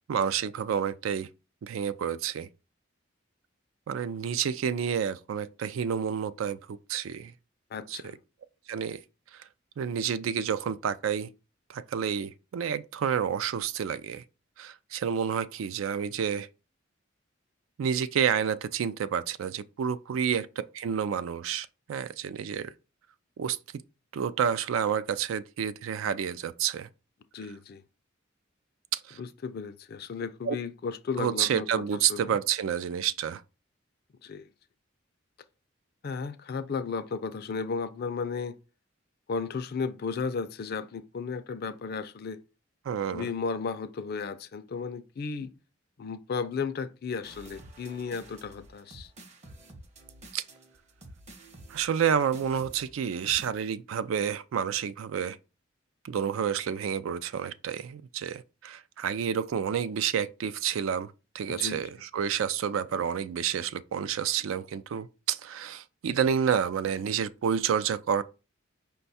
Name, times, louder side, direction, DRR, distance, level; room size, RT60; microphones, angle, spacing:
voice 1, 0.1-1.3 1.6-2.5 3.9-7.3 7.9-8.1 8.7-9.0 9.3-9.4 9.8-11.3 11.7-14.2 14.6-16.5 17.8-20.5 20.7-22.7 23.4-23.6 24.1-26.9 28.9-29.2 30.4-30.6 31.2-33.4 42.9-43.3 50.3-50.4 51.7-55.4 56.0-68.2, right 8 dB, 80° right, 0.3 m, -29 dB
voice 2, 7.7-8.2 27.3-27.8 29.2-31.8 32.1-32.4 34.2-34.5 36.0-38.5 39.3-42.4 43.1-45.5 46.0-49.1 61.5-61.8, left 5 dB, 50° left, 0.4 m, -34 dB
sound 1, 47.2-53.5, right 1 dB, 35° right, 0.7 m, -50 dB
5.3 x 2.2 x 4.0 m
head